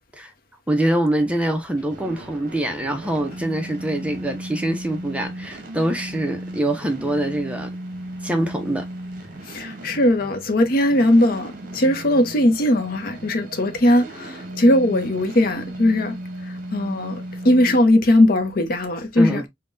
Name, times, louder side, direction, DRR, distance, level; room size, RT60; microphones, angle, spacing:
voice 1, 0.7-7.7 8.2-8.9 19.2-19.5, right 1 dB, 5° right, 0.5 m, -24 dB
sound 1, 1.1-17.8, right 1 dB, 50° right, 0.9 m, -36 dB
voice 2, 9.5-16.2 16.7-19.4, left 1 dB, 50° left, 0.7 m, -19 dB
5.4 x 2.2 x 2.4 m
head